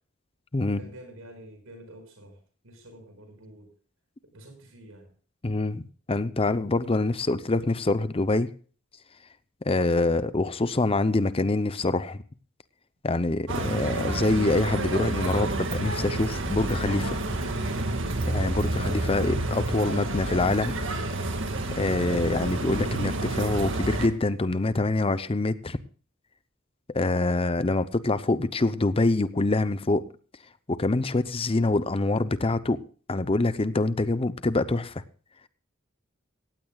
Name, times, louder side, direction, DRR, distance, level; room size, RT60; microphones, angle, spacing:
voice 1, 0.7-3.7 4.3-5.1, right 1 dB, 80° right, 6 dB, 5.8 m, -48 dB
voice 2, 5.4-8.5 9.6-12.2 13.0-17.2 18.3-20.8 21.8-25.8 26.9-30.0 30.7-32.8 33.1-35.0, left 2 dB, 25° left, 14 dB, 0.7 m, -25 dB
sound 1, 13.5-24.1, right 2 dB, 65° right, 2.0 m, -29 dB
18.0 x 15.0 x 2.4 m, 0.41 s
head